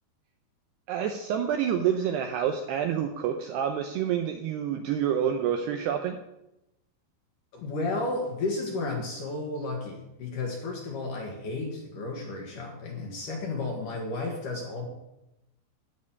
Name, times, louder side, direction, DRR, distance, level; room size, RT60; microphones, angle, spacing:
voice 1, 0.9-6.2, right 9 dB, 80° right, 5 dB, 2.4 m, -28 dB
voice 2, 7.5-14.9, left 3 dB, 55° left, 0 dB, 2.6 m, -33 dB
13.5 x 5.4 x 9.4 m, 0.90 s
omnidirectional pair, 5.6 m